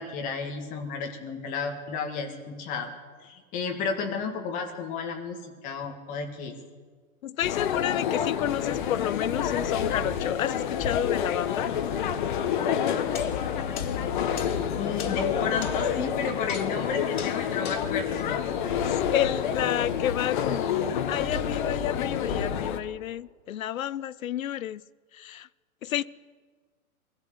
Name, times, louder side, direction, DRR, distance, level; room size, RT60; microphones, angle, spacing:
voice 1, 0.0-2.9 3.2-6.6 14.8-18.3, left 5 dB, 20° left, 1.9 m, -32 dB
voice 2, 7.2-11.7 18.7-24.8 25.1-25.5 25.8-26.0, left 11 dB, 65° left, 0.7 m, -30 dB
sound 1, 7.4-22.8, left 8 dB, 35° left, 1.2 m, -28 dB
sound 2, 13.0-19.3, left 8 dB, 85° left, 2.2 m, -38 dB
22.5 x 15.5 x 7.9 m
hypercardioid pair, 165°, 44 cm